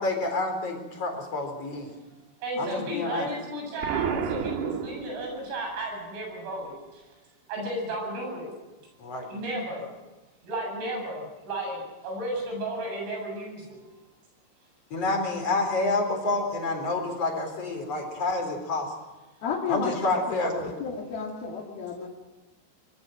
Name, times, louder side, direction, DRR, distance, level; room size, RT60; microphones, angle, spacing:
voice 1, 0.0-1.9 2.6-3.3 9.0-9.3 14.9-18.9 19.7-20.7, left 2 dB, 35° left, 4 dB, 4.5 m, -28 dB
voice 2, 2.4-7.0 7.5-8.5 9.3-9.8 10.4-13.8, right 1 dB, 90° right, 1 dB, 11.0 m, -33 dB
Explosion, 3.8-5.6, right 7 dB, 65° right, 3.5 m, -30 dB
voice 3, 19.4-19.9 20.5-22.1, left 6 dB, 55° left, -2 dB, 4.0 m, -32 dB
25.5 x 21.0 x 6.2 m, 1.1 s
omnidirectional pair, 5.5 m